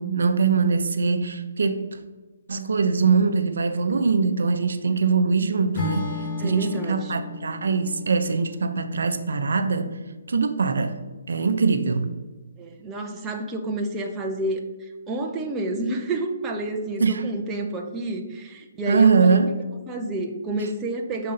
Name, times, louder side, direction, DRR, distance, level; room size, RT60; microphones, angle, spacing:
voice 1, 0.0-2.0 2.5-10.0 10.3-11.0 11.3-12.1 17.0-17.3 18.9-19.5, right 4 dB, 75° right, 8 dB, 0.6 m, -22 dB
Acoustic guitar / Strum, 5.7-10.0, left 4 dB, 40° left, 1.3 m, -35 dB
voice 2, 6.4-7.2 12.6-19.4 19.9-21.3, right 2 dB, 15° right, 0 dB, 0.6 m, -29 dB
5.4 x 3.8 x 5.6 m, 1.2 s
hypercardioid pair, 160°, 0 cm